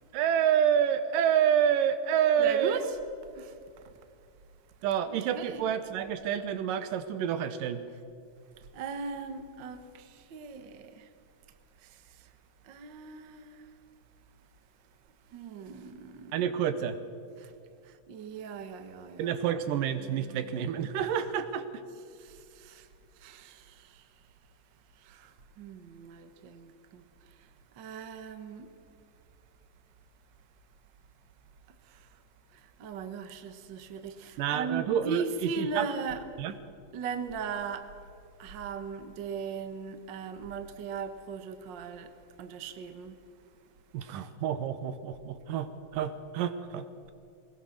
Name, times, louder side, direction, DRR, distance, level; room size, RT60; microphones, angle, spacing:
voice 1, 0.1-2.8 4.8-7.8 16.3-17.0 19.2-21.7 34.4-35.2 35.6-35.9 36.4-36.6 43.9-47.1, right 9 dB, 85° right, 2.6 m, -28 dB
voice 2, 2.4-2.9 3.3-3.6 5.1-5.6 8.7-11.1 11.8-12.3 12.6-13.7 15.3-16.4 17.4-17.5 18.1-19.3 20.0-20.5 22.1-22.9 23.2-24.1 24.9-28.7 31.8-32.2 32.5-36.2 36.9-37.9 38.4-42.1 42.4-43.2, right 5 dB, 60° right, 1.1 m, -39 dB
21.0 x 19.5 x 6.6 m
omnidirectional pair, 3.8 m